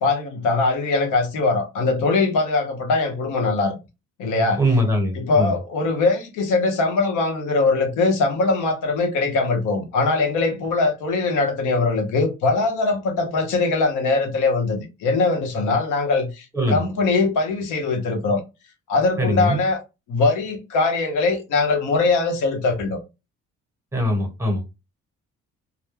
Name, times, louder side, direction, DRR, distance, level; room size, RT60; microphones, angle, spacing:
voice 1, 0.0-3.8 4.2-4.6 5.1-18.4 18.9-19.8 20.1-23.0, left 3 dB, 85° left, 0.8 m, -21 dB
voice 2, 4.6-5.5 16.5-16.8 19.2-19.6 23.9-24.6, equal, 10° right, 1.1 m, -21 dB
2.1 x 2.0 x 3.1 m
cardioid pair, 90°, 30 cm